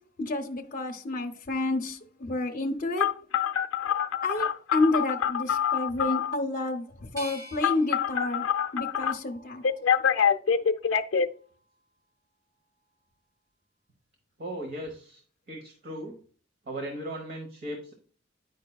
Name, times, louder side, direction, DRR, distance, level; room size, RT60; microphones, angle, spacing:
voice 1, 0.2-3.1 4.2-8.4 8.7-9.7, left 2 dB, 40° left, 0.6 m, -30 dB
Telephone, 3.0-6.3 7.6-9.1 9.6-11.3, left 7 dB, 80° left, 0.5 m, -25 dB
sound 1, 7.2-10.1 10.6-11.5, equal, 20° right, 1.6 m, -48 dB
voice 2, 14.4-15.2 15.5-16.2 16.7-17.9, right 1 dB, 50° right, 1.1 m, -37 dB
9.3 x 5.3 x 2.3 m
head